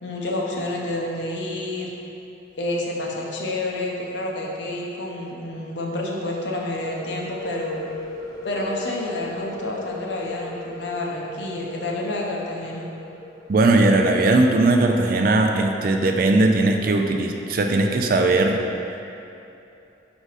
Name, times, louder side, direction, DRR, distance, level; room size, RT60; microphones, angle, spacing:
voice 1, 0.0-1.9 2.6-7.8 8.4-12.8, left 1 dB, 70° left, -2 dB, 0.8 m, -29 dB
sound 1, 6.7-14.3, left 2 dB, 20° left, 0.5 m, -38 dB
voice 2, 13.5-18.6, right 2 dB, 50° right, 3 dB, 0.4 m, -19 dB
5.1 x 4.8 x 4.1 m, 2.8 s
head